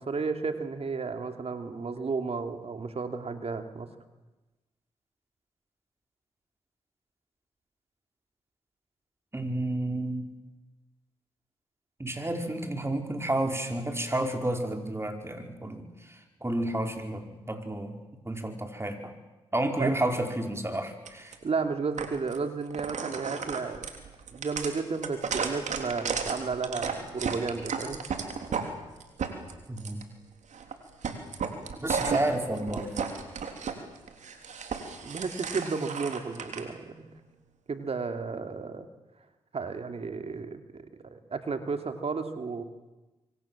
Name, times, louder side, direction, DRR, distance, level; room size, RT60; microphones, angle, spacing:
voice 1, 0.0-3.9 19.8-19.9 21.4-23.8 24.3-28.0 35.0-37.1 37.7-38.9 39.5-42.6, right 4 dB, 50° right, 7 dB, 2.9 m, -33 dB
voice 2, 9.3-10.3 12.0-18.0 18.2-19.1 19.5-21.3 29.7-30.0 31.8-32.9, right 1 dB, 20° right, 5 dB, 5.1 m, -31 dB
sound 1, 21.0-21.3 22.0-22.4 22.7-28.7 29.0-30.0 30.5-30.7 31.0-33.7 34.1-36.6, right 6 dB, 65° right, 3.5 m, -33 dB
25.5 x 24.5 x 7.5 m, 1.1 s
hypercardioid pair, 40°, 13 cm